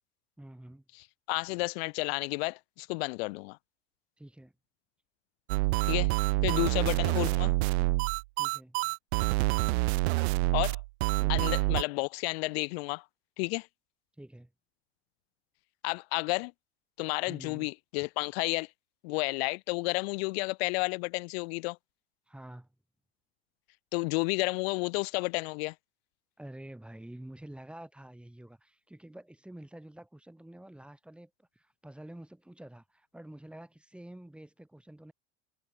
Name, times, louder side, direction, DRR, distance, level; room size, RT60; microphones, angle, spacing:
voice 1, 0.4-0.8 4.2-4.5 8.4-8.8 11.2-11.4 14.2-14.5 17.3-17.7 22.3-22.7 26.4-35.1, right 1 dB, 5° right, 4.2 m, -48 dB
voice 2, 1.3-3.6 5.8-6.1 6.4-7.5 10.5-10.8 11.3-13.0 13.4-13.7 15.8-16.5 17.0-18.7 19.0-21.8 23.9-25.7, left 27 dB, 75° left, 2.3 m, -31 dB
sound 1, 5.5-11.8, right 24 dB, 80° right, 0.6 m, -27 dB
supercardioid pair, 130°, 31 cm